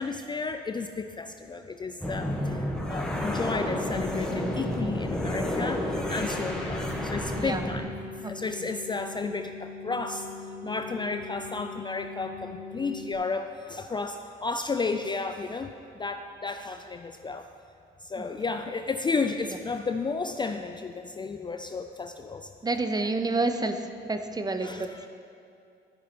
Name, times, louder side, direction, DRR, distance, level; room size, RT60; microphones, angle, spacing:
voice 1, 0.0-7.9 8.2-10.3 10.6-15.7 16.0-17.5 18.0-22.5 24.6-25.1, left 4 dB, 25° left, 7 dB, 0.3 m, -33 dB
sound 1, 2.0-7.8, left 1 dB, 5° left, 1.1 m, -30 dB
sound 2, 3.1-13.1, left 4 dB, 50° left, 1.3 m, -41 dB
voice 2, 7.3-7.7 8.2-8.3 22.6-25.1, right 3 dB, 20° right, 8 dB, 0.6 m, -29 dB
13.0 x 5.5 x 4.2 m, 2.5 s
cardioid pair, 90°, 20 cm